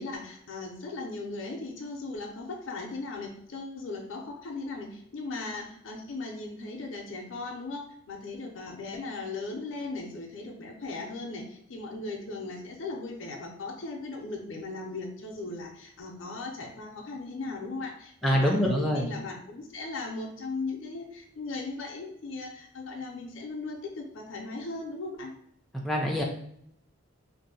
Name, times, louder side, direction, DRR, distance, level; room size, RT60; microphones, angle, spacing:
voice 1, 0.0-25.3, left 3 dB, 70° left, 0 dB, 0.5 m, -38 dB
voice 2, 18.2-19.1 25.7-26.2, equal, ahead, -2 dB, 0.3 m, -25 dB
2.6 x 2.0 x 3.9 m, 0.71 s
head